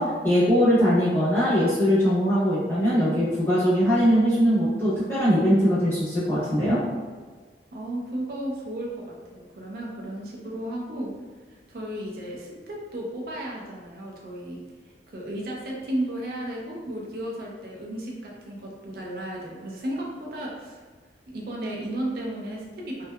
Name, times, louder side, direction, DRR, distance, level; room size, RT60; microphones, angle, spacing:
voice 1, 0.0-6.8, equal, 15° left, -11 dB, 0.7 m, -21 dB
voice 2, 7.7-8.9 9.3-11.1 11.5-14.6 15.1-20.8 21.3-23.0, right 1 dB, 55° right, -2 dB, 0.4 m, -34 dB
2.6 x 2.2 x 2.2 m, 1.4 s
head